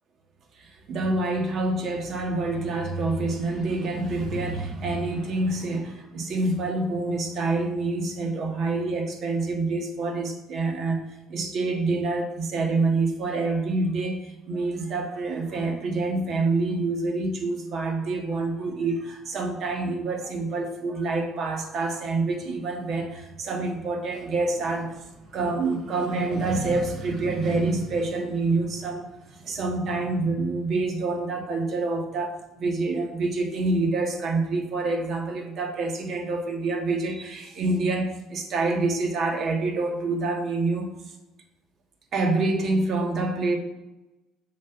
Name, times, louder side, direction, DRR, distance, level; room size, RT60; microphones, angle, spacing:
voice 1, 0.6-40.9 42.1-43.6, right 3 dB, 55° right, 3 dB, 1.7 m, -27 dB
7.2 x 4.4 x 6.9 m, 1.0 s
supercardioid pair, 90°, 0 cm